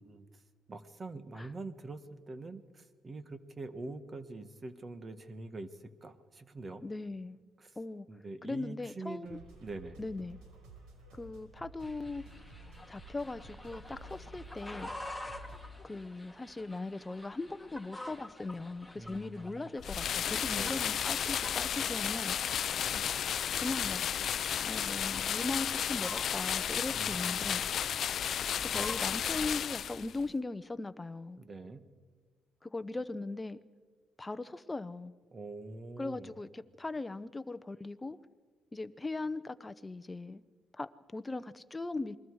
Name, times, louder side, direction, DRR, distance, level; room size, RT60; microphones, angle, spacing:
voice 1, 0.0-0.4 0.7-6.8 7.6-7.8 8.1-10.0 18.9-19.7 20.5-20.8 22.9-23.2 26.9-27.9 31.4-31.8 35.3-36.3, right 2 dB, 30° right, 1.6 m, -45 dB
voice 2, 6.8-7.4 7.8-8.1 8.4-9.4 10.0-10.4 11.1-12.2 12.9-14.9 15.8-22.4 23.6-24.3 24.7-27.6 28.6-31.4 32.6-33.6 34.2-35.1 36.0-38.2 38.7-40.4 40.7-42.1, left 3 dB, 15° left, 0.9 m, -39 dB
sound 1, 9.2-15.7, right 1 dB, 85° right, 5.1 m, -52 dB
sound 2, 11.8-29.3, left 1 dB, ahead, 2.1 m, -49 dB
sound 3, 19.8-30.2, left 9 dB, 60° left, 0.6 m, -33 dB
28.0 x 22.0 x 4.8 m
cardioid pair, 105°, 0 cm